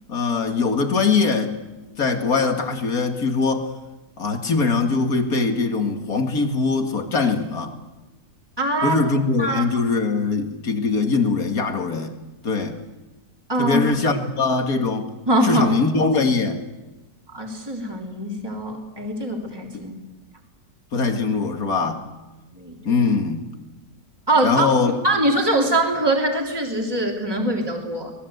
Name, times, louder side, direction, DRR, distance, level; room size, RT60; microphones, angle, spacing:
voice 1, 0.1-1.5 2.0-3.7 4.2-7.8 8.8-12.1 12.4-12.8 13.6-15.1 15.4-16.6 19.7-19.8 20.9-22.1 22.8-23.5 24.4-24.9, left 4 dB, 65° left, 5 dB, 2.6 m, -22 dB
voice 2, 8.6-9.0 9.4-9.7 13.5-13.9 15.3-15.7 17.3-19.9 22.5-23.0 24.3-24.7 25.0-28.1, right 1 dB, 15° right, 1 dB, 3.4 m, -23 dB
26.0 x 19.5 x 8.1 m, 1.1 s
omnidirectional pair, 1.7 m